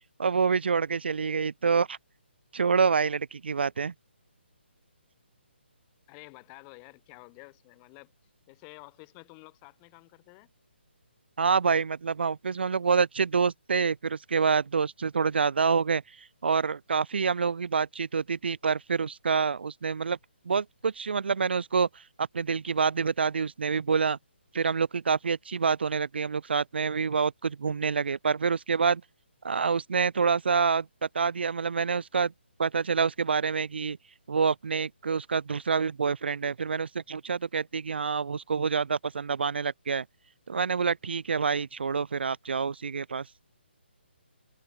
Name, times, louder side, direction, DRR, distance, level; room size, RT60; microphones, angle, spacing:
voice 1, 0.2-2.0 2.5-3.9 11.4-16.0 16.4-20.2 20.5-24.2 24.5-29.0 29.4-30.9 31.1-32.3 32.6-34.0 34.3-40.0 40.5-43.3, right 5 dB, 60° right, 0.8 m, -27 dB
voice 2, 6.1-8.1 8.5-10.5, left 40 dB or more, 15° left, 1.5 m, -50 dB
hypercardioid pair, 170°, 6 cm